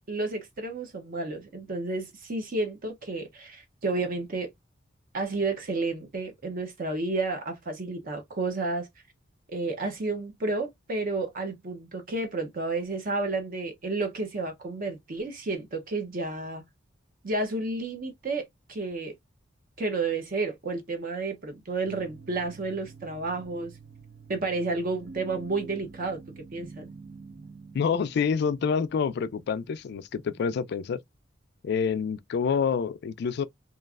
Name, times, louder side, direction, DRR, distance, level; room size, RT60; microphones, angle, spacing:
voice 1, 0.1-4.5 5.1-8.9 9.5-16.6 17.2-19.1 19.8-23.7 24.3-26.8, right 3 dB, 45° right, 0.6 m, -31 dB
sound 1, 21.8-30.6, right 4 dB, 75° right, 1.2 m, -48 dB
voice 2, 27.7-31.0 31.6-33.4, left 6 dB, 55° left, 0.3 m, -27 dB
3.0 x 2.4 x 2.3 m
head